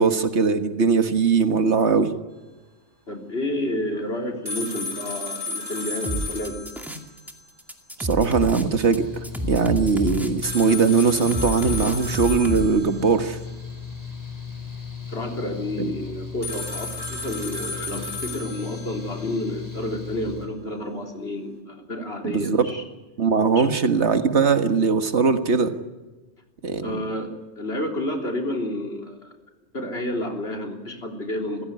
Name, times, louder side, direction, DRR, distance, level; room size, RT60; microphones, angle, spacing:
voice 1, 0.0-2.1 8.0-9.1 9.4-13.4 15.8-15.9 22.2-22.7 23.2-25.7 26.6-27.0, right 5 dB, 80° right, 9 dB, 1.8 m, -20 dB
voice 2, 3.1-6.6 15.1-22.8 23.6-23.7 26.8-29.3 29.7-31.6, left 1 dB, 65° left, 3 dB, 3.7 m, -30 dB
sound 1, 4.5-7.5 7.8-7.9 10.4-13.4 16.4-19.4, left 2 dB, 20° right, 4.0 m, -34 dB
sound 2, 6.0-7.3 7.6-12.7, equal, ahead, 2.3 m, -30 dB
Mechanical fan, 8.6-20.5, left 5 dB, 15° left, 4.7 m, -37 dB
27.0 x 16.0 x 9.5 m, 1.2 s
omnidirectional pair, 1.2 m